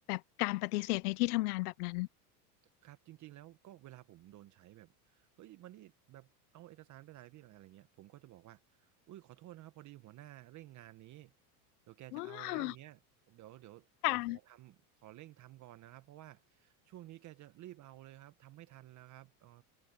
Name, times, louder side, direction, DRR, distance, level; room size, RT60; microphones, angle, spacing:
voice 1, 0.1-2.1 12.1-12.7 14.0-14.4, left 21 dB, 80° left, 0.7 m, -33 dB
voice 2, 2.8-11.3 11.9-13.0 13.3-19.6, right 15 dB, 40° right, 1.1 m, -54 dB
supercardioid pair, 120°, 45 cm